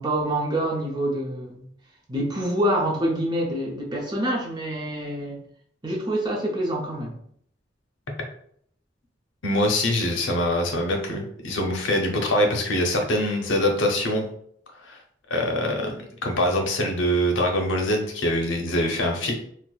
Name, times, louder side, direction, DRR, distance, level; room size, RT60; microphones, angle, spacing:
voice 1, 0.0-1.6 2.1-5.4 5.8-7.2, right 1 dB, 25° right, -1 dB, 0.6 m, -26 dB
voice 2, 9.4-14.3 14.8-15.0 15.3-19.3, left 1 dB, 85° left, 1 dB, 0.7 m, -24 dB
4.4 x 2.1 x 2.4 m, 0.64 s
head